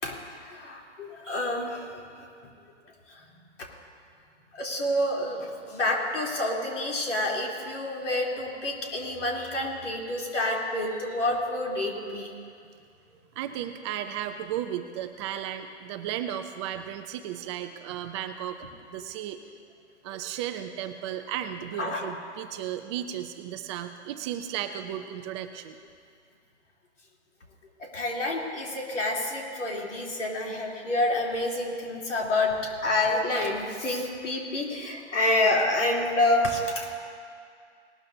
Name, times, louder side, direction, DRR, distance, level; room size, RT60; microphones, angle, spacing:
voice 1, 0.0-1.9 3.1-3.2 3.6-3.7 4.5-12.3 21.8-22.0 27.8-32.5 32.8-36.9, left 1 dB, 85° left, -2 dB, 3.4 m, -28 dB
voice 2, 13.4-19.4 20.0-25.8, right 10 dB, 25° right, 7 dB, 0.5 m, -34 dB
19.5 x 13.0 x 2.7 m, 2.2 s
hypercardioid pair, 135°, 36 cm